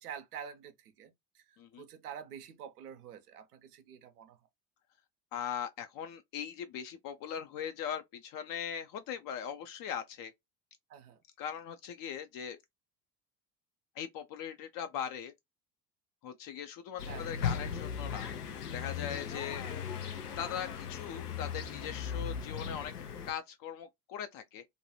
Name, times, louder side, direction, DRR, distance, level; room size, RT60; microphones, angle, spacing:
voice 1, 0.0-4.4 10.9-11.2 17.1-17.4, right 8 dB, 85° right, 0.6 m, -47 dB
voice 2, 5.3-10.3 11.4-12.6 14.0-15.3 16.2-18.3 18.7-19.6 20.4-22.9 23.3-24.7, left 8 dB, 50° left, 0.5 m, -40 dB
sound 1, 17.0-23.3, left 7 dB, 90° left, 0.7 m, -38 dB
2.7 x 2.2 x 2.9 m
hypercardioid pair, 65°, 45 cm